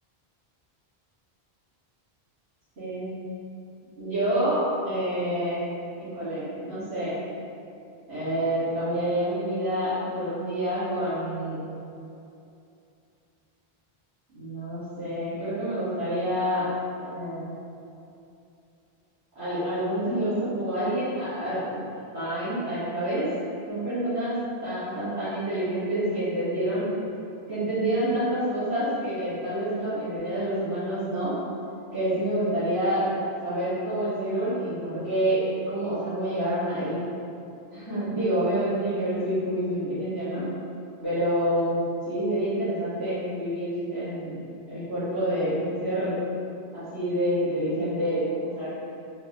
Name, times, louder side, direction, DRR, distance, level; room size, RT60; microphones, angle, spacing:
voice 1, 2.8-3.2 4.0-5.7 6.0-7.1 8.1-11.7 14.3-16.6 17.0-17.5 19.4-21.8 22.1-23.3 23.7-26.9 27.5-31.3 31.9-33.1 33.4-37.0 37.7-40.5 41.0-41.8 42.1-44.3 44.7-46.2 46.7-48.7, right 1 dB, 85° right, -18 dB, 2.0 m, -28 dB
4.5 x 2.3 x 3.0 m, 2.7 s
omnidirectional pair, 1.1 m